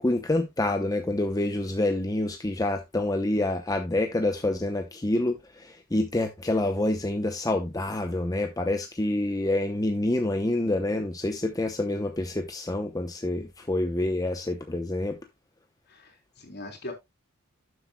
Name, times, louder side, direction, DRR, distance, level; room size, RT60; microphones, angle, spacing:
voice 1, 0.0-15.2, left 1 dB, 15° left, 0.8 m, -27 dB
voice 2, 15.9-16.9, left 1 dB, 50° left, 3.5 m, -41 dB
11.5 x 7.9 x 2.2 m
head